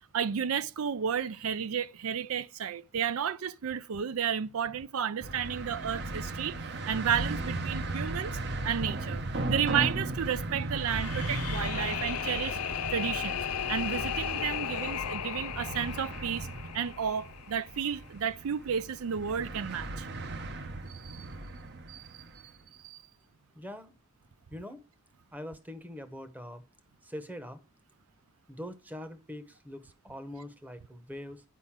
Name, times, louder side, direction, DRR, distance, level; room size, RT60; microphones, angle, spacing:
voice 1, 0.1-12.6 12.9-13.4 13.7-16.5 16.7-20.1 20.9-21.3 21.9-22.2 22.8-23.0, right 8 dB, 75° right, 0.4 m, -32 dB
sound 1, 5.2-22.5, right 2 dB, 50° right, 0.8 m, -37 dB
sound 2, 10.8-17.9, left 10 dB, 85° left, 0.5 m, -36 dB
voice 2, 23.5-23.9 24.5-24.8 25.3-26.6 27.0-27.6 28.5-31.4, left 1 dB, 5° right, 0.8 m, -43 dB
10.0 x 5.3 x 7.3 m
head